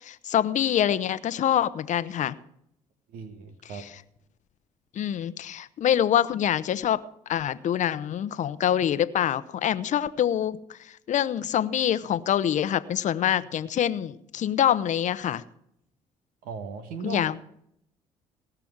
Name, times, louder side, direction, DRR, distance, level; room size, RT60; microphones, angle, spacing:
voice 1, 0.0-2.3 3.7-3.9 4.9-7.0 7.3-15.4 17.0-17.4, left 10 dB, 60° left, 15 dB, 0.8 m, -25 dB
voice 2, 3.1-3.8 16.4-17.2, right 5 dB, 80° right, 8 dB, 1.5 m, -37 dB
18.0 x 6.0 x 7.3 m, 0.73 s
supercardioid pair, 65°, 14 cm